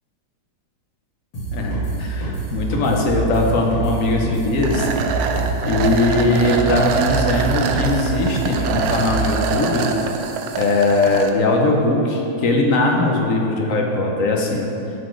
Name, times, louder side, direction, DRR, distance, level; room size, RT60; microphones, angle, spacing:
sound 1, 1.3-9.2, right 3 dB, 80° left, 3.0 m, -26 dB
voice 1, 1.5-4.9 5.6-9.9 10.6-14.7, left 2 dB, 55° left, 0 dB, 1.1 m, -20 dB
sound 2, 4.6-11.3, right 5 dB, 75° right, 1.3 m, -25 dB
11.5 x 4.3 x 4.5 m, 2.8 s
omnidirectional pair, 2.1 m